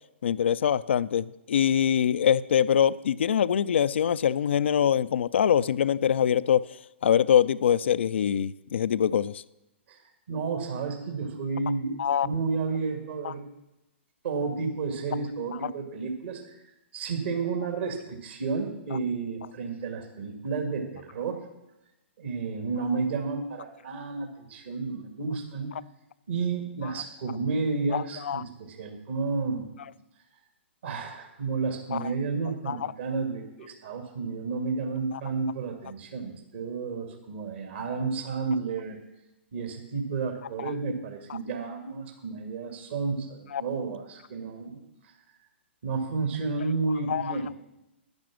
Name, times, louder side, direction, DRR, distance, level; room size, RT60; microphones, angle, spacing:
voice 1, 0.2-6.6 7.0-9.4 12.0-12.3 13.2-13.3 15.6-15.7 27.9-28.4 31.9-32.0 32.7-32.8 35.1-35.2 40.6-40.7 41.3-41.4 43.5-43.6 47.1-47.4, left 9 dB, 65° left, 17 dB, 0.4 m, -24 dB
voice 2, 10.3-12.0 12.2-13.5 14.2-16.6 16.9-21.4 22.2-25.7 26.3-29.7 30.8-39.0 39.5-44.8 45.8-47.5, right 4 dB, 60° right, 4 dB, 2.2 m, -31 dB
10.5 x 10.5 x 6.1 m, 0.94 s
figure-of-eight pair, 120°, 7 cm